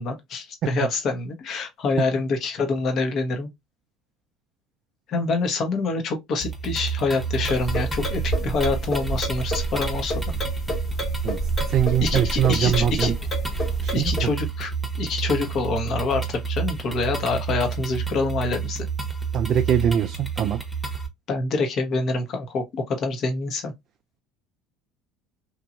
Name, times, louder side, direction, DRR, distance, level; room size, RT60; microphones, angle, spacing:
voice 1, 0.0-3.5 5.1-10.1 12.0-13.1 13.9-14.7 15.0-18.9 21.3-23.7, left 3 dB, 50° left, 1.1 m, -26 dB
sound 1, 6.4-21.1, right 6 dB, ahead, 1.1 m, -30 dB
sound 2, 7.4-14.3, right 1 dB, 30° left, 1.4 m, -29 dB
voice 2, 11.7-13.1 13.8-14.1 19.3-20.6, right 9 dB, 50° right, 0.3 m, -22 dB
3.0 x 2.7 x 2.5 m
hypercardioid pair, 80°, 0 cm